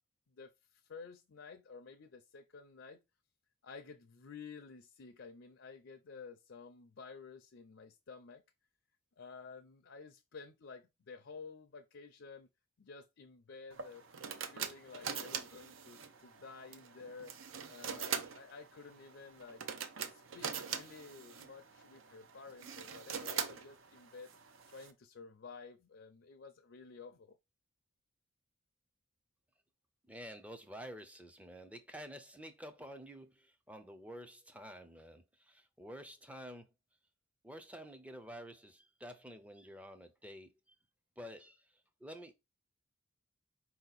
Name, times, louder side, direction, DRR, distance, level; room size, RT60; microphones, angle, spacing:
voice 1, 0.3-3.0 3.6-8.4 9.2-12.5 12.8-14.0 14.5-17.4 17.7-19.6 20.0-24.3 24.7-27.4, left 5 dB, 60° left, 0.5 m, -52 dB
sound 1, 13.7-24.9, right 7 dB, 70° right, 0.6 m, -43 dB
voice 2, 30.1-36.7 37.4-40.7 41.2-42.3, equal, 5° right, 0.4 m, -50 dB
4.7 x 2.8 x 4.0 m
head